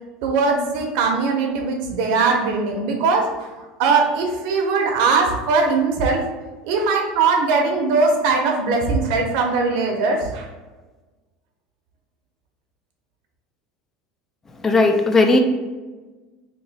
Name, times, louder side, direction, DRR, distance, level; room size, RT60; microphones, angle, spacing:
voice 1, 0.2-6.2 6.6-10.5, right 4 dB, 65° right, 2 dB, 0.7 m, -20 dB
voice 2, 14.6-15.4, left 3 dB, 15° left, 5 dB, 0.3 m, -16 dB
2.9 x 2.6 x 4.1 m, 1.2 s
cardioid pair, 155°, 3 cm